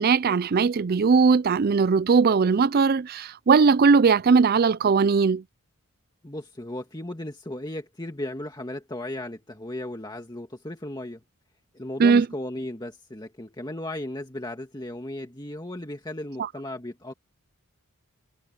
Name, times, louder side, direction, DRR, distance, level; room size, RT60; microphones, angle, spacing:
voice 1, 0.0-5.4 12.0-12.3 16.4-16.5, right 5 dB, 45° right, 0.4 m, -19 dB
voice 2, 6.2-11.2 11.7-17.1, left 1 dB, 20° left, 1.8 m, -35 dB
head